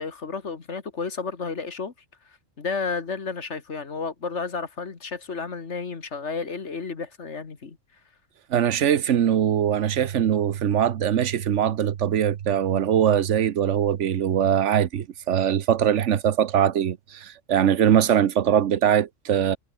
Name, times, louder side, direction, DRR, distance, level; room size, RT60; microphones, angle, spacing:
voice 1, 0.0-1.9 2.6-7.8, left 4 dB, 60° left, 2.2 m, -32 dB
voice 2, 8.5-19.6, right 9 dB, 70° right, 1.2 m, -22 dB
omnidirectional pair, 1.3 m